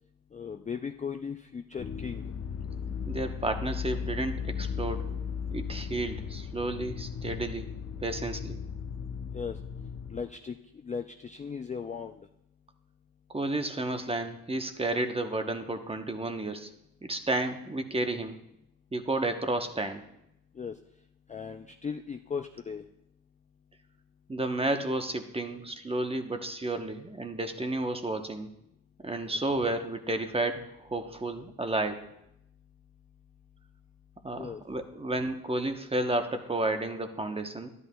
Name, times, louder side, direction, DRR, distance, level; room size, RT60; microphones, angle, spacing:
voice 1, 0.3-2.2 9.3-9.6 10.1-10.6 10.8-12.2 20.6-20.7 21.3-22.8 34.3-34.6, left 6 dB, 20° left, 5 dB, 0.4 m, -37 dB
sound 1, 1.8-10.2, left 6 dB, 40° left, 0.8 m, -36 dB
voice 2, 3.1-5.1 5.5-7.7 8.0-8.6 13.3-16.7 17.0-18.4 18.9-20.0 24.3-28.5 29.0-32.1 34.2-37.7, right 2 dB, 15° right, 6 dB, 0.9 m, -32 dB
12.0 x 11.0 x 2.3 m, 0.81 s
cardioid pair, 80°, 37 cm